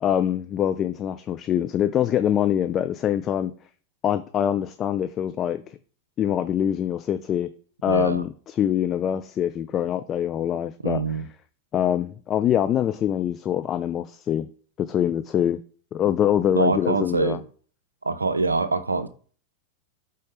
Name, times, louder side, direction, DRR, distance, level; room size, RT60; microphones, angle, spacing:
voice 1, 0.0-3.5 4.0-5.6 6.2-7.5 7.8-11.0 11.7-14.5 14.8-15.6 15.9-17.4, left 10 dB, 30° left, 0.4 m, -24 dB
voice 2, 7.9-8.2 10.8-11.2 16.5-17.4 18.0-19.1, right 3 dB, 80° right, 0.6 m, -24 dB
5.3 x 4.1 x 4.9 m
figure-of-eight pair, 90°, 0 cm